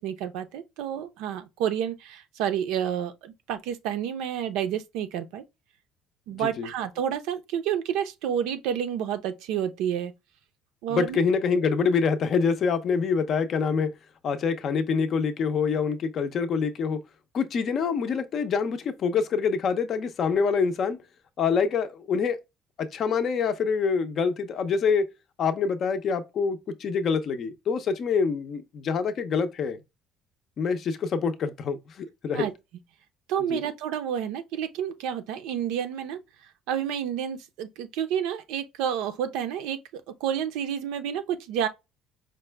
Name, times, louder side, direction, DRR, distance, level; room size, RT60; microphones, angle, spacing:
voice 1, 0.0-5.4 6.3-10.1 10.8-11.2 32.3-32.5 33.3-36.2 36.7-41.7, right 9 dB, 80° right, 0.7 m, -29 dB
voice 2, 6.3-6.7 10.9-13.9 14.2-17.0 17.3-21.0 21.4-22.4 22.8-25.0 25.4-29.8 30.6-32.5 33.5-33.6, left 5 dB, 35° left, 0.5 m, -26 dB
5.2 x 2.2 x 3.3 m
cardioid pair, 175°, 0 cm